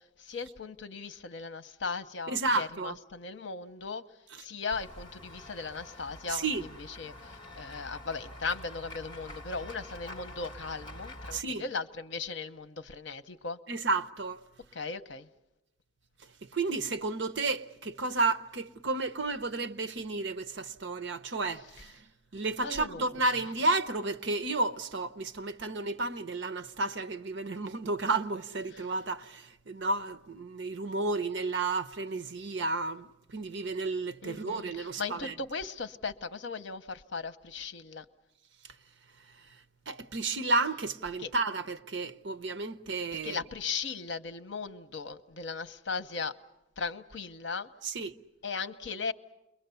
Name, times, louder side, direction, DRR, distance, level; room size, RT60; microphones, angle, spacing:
voice 1, 0.0-4.0 4.4-13.6 14.7-15.3 22.6-23.2 34.2-38.0 41.2-41.3 43.2-46.3 46.8-47.7 48.4-49.1, left 4 dB, 70° left, 0.9 m, -37 dB
voice 2, 2.3-3.0 6.3-6.6 11.3-11.6 13.7-14.4 16.4-22.1 22.3-35.3 39.9-43.4 47.8-48.2, right 3 dB, 65° right, 0.8 m, -32 dB
Run / Walk footsteps / Bell, 4.7-11.4, left 1 dB, 25° left, 1.7 m, -46 dB
29.0 x 22.5 x 7.0 m
head